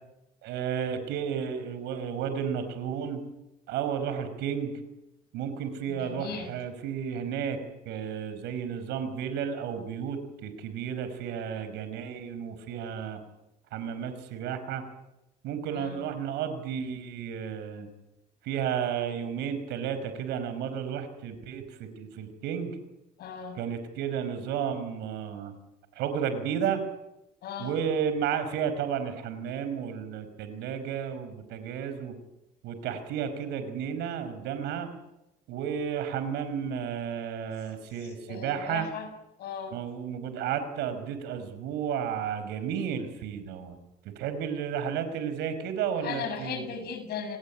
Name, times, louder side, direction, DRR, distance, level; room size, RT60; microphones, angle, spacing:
voice 1, 0.4-3.2 3.7-4.7 5.3-7.6 7.9-13.2 13.7-14.8 15.4-17.9 18.4-22.8 23.5-25.5 26.0-26.8 27.6-32.2 32.6-34.9 35.5-38.9 39.7-43.8 44.1-46.7, right 8 dB, 90° right, 10 dB, 5.3 m, -32 dB
voice 2, 5.9-6.5 15.7-16.1 23.2-23.6 27.4-27.7 38.0-39.1 39.4-39.8 46.0-47.4, left 6 dB, 70° left, 8 dB, 7.0 m, -37 dB
29.5 x 20.0 x 8.6 m, 0.91 s
cardioid pair, 110°, 17 cm